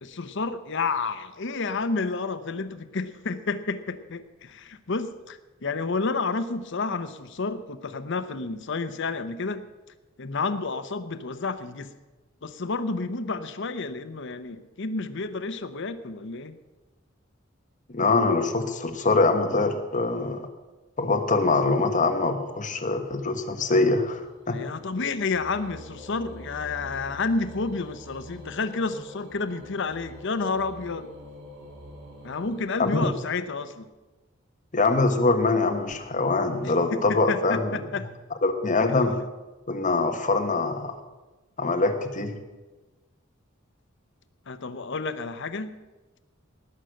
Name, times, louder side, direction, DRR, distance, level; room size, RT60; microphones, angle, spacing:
voice 1, 0.0-9.6 10.2-11.9 12.4-16.6 24.5-31.1 32.2-33.9 36.6-38.1 44.5-45.7, left 4 dB, 65° left, 12 dB, 0.8 m, -30 dB
voice 2, 17.9-20.4 21.0-24.2 24.5-24.6 32.8-33.1 34.7-37.8 38.4-39.2 39.7-40.9 41.6-42.3, left 3 dB, 40° left, 6 dB, 1.3 m, -23 dB
sound 1, 23.1-33.8, equal, 70° right, 4.8 m, -46 dB
18.5 x 6.5 x 7.7 m, 1.2 s
head